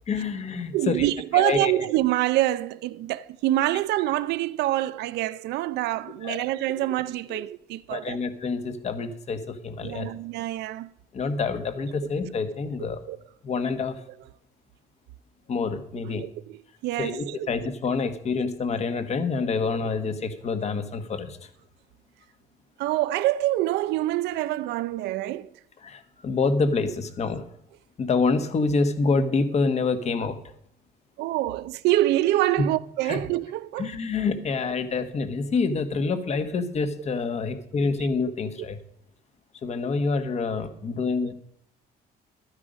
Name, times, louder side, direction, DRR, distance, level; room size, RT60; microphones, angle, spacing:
voice 1, 0.1-1.1 1.3-1.7 6.2-6.4 7.9-10.1 11.1-13.0 13.4-13.9 15.5-16.2 17.0-21.4 25.8-27.4 28.0-30.4 33.1-33.2 33.8-38.8 39.6-41.3, left 4 dB, 40° left, 1.4 m, -27 dB
voice 2, 0.7-8.2 9.8-10.9 13.1-13.2 16.0-17.5 19.6-19.7 22.8-25.5 31.2-33.9 38.0-38.1, right 15 dB, 80° right, 0.6 m, -26 dB
12.5 x 9.7 x 5.1 m
cardioid pair, 110°, 17 cm